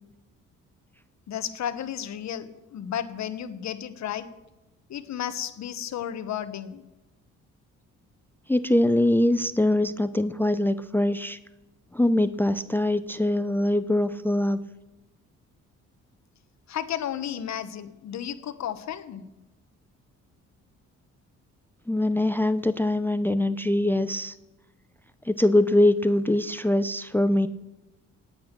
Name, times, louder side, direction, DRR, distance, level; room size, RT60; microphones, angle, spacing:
voice 1, 1.3-4.3 4.9-6.8 16.7-19.2, left 10 dB, 65° left, 11 dB, 1.2 m, -33 dB
voice 2, 8.5-11.4 11.9-14.6 21.9-24.3 25.3-27.5, left 1 dB, 5° left, 14 dB, 0.5 m, -23 dB
18.0 x 8.6 x 6.0 m, 1.0 s
cardioid pair, 90°, 30 cm